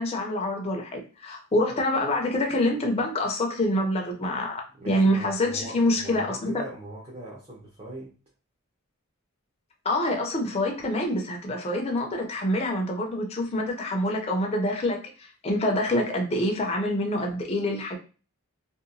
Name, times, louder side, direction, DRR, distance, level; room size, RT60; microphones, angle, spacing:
voice 1, 0.0-6.6 9.8-18.0, left 1 dB, 30° left, 0.4 m, -26 dB
voice 2, 4.7-8.1, right 1 dB, 30° right, 0.6 m, -41 dB
2.8 x 2.2 x 2.6 m
head